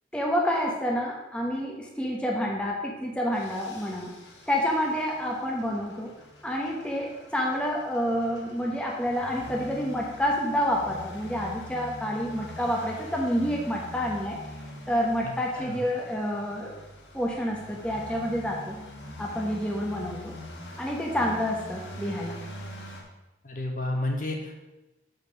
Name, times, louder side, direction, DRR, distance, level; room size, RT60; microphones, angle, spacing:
voice 1, 0.1-4.1 4.5-6.1 6.4-14.4 14.9-16.7 17.1-18.7 19.2-20.3 20.8-22.4, equal, 5° left, -2 dB, 0.9 m, -28 dB
sound 1, 3.3-23.0, left 1 dB, 85° left, 1.7 m, -44 dB
voice 2, 15.2-15.9 23.4-24.5, left 1 dB, 45° left, 2 dB, 1.2 m, -32 dB
6.4 x 5.3 x 6.2 m, 1.0 s
head